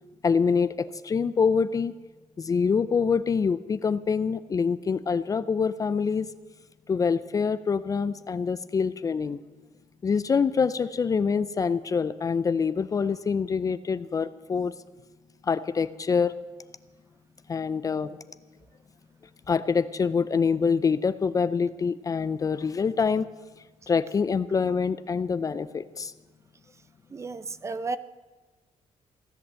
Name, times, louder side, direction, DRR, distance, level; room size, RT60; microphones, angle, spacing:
voice 1, 0.2-1.9 2.4-6.3 6.9-9.4 10.0-14.7 15.4-16.3 17.5-18.2 19.5-23.3 23.9-26.1, left 5 dB, 30° left, 15 dB, 0.4 m, -25 dB
voice 2, 27.1-28.0, right 3 dB, 25° right, 15 dB, 0.5 m, -33 dB
16.5 x 10.5 x 7.5 m, 1.3 s
cardioid pair, 155°, 12 cm